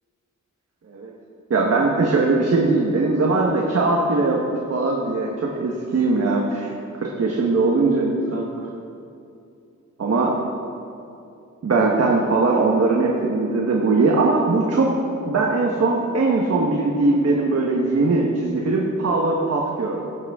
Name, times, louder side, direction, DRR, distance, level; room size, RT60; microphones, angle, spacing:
voice 1, 1.5-4.4 4.7-6.7 7.0-8.5 10.0-10.4 11.6-20.0, right 3 dB, 55° right, -2 dB, 1.2 m, -20 dB
16.5 x 8.7 x 3.6 m, 2.6 s
wide cardioid pair, 115°, 30 cm